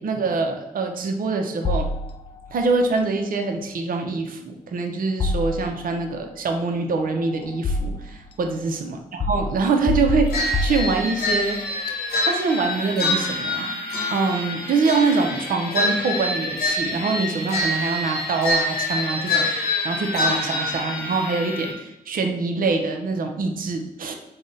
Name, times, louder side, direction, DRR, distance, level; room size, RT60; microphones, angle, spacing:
voice 1, 0.0-1.9 2.5-9.0 9.3-11.6 12.2-13.7 14.1-24.1, right 4 dB, 65° right, 4 dB, 0.6 m, -24 dB
sound 1, 1.6-2.5 5.2-6.1 7.0-8.3 9.2-11.4, left 2 dB, 35° left, 0.4 m, -26 dB
sound 2, 10.3-21.7, left 2 dB, 80° left, 0.9 m, -26 dB
3.8 x 2.1 x 3.7 m, 0.93 s
supercardioid pair, 40°, 16 cm